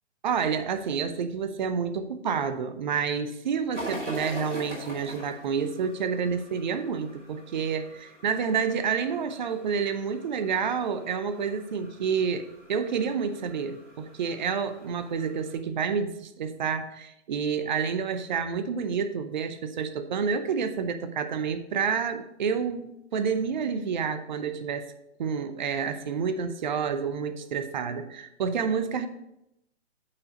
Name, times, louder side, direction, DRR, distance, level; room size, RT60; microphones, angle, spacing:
voice 1, 0.2-24.9 25.2-29.1, right 6 dB, 40° right, 10 dB, 0.7 m, -29 dB
sound 1, 3.7-15.6, right 1 dB, 80° right, 2.5 m, -43 dB
8.5 x 4.6 x 5.1 m, 0.82 s
figure-of-eight pair, 125°, 36 cm